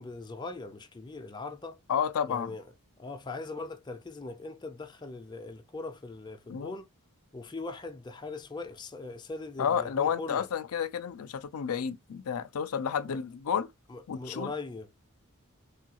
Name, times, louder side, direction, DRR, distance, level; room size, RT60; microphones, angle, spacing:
voice 1, 0.0-1.8 2.3-2.7 3.0-6.9 7.3-10.5 13.1-13.2 13.9-14.9, left 3 dB, 20° left, 0.4 m, -40 dB
voice 2, 1.9-2.5 6.5-6.8 9.6-13.7 14.1-14.5, left 7 dB, 80° left, 0.4 m, -31 dB
3.3 x 2.3 x 2.8 m
head